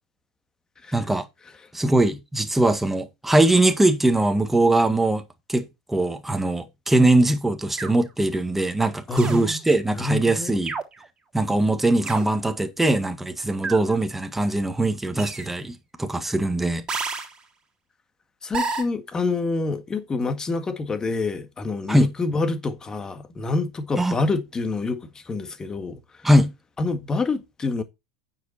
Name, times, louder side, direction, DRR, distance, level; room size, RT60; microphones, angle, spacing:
voice 1, 0.9-1.2 1.7-5.2 5.5-10.7 11.3-16.8 21.9-22.1 24.0-24.1 26.2-26.5, right 2 dB, 5° right, 1.9 m, -21 dB
sound 1, 7.8-8.1 9.2-9.5 10.7-11.1 12.1-12.3 13.6-14.0 15.2-15.5 16.9-17.4 18.5-18.8, right 4 dB, 25° right, 3.4 m, -30 dB
voice 2, 9.1-9.6 9.9-10.6 18.4-26.0 26.8-27.8, left 3 dB, 20° left, 1.8 m, -27 dB
9.2 x 7.3 x 4.4 m
figure-of-eight pair, 85°, 3 cm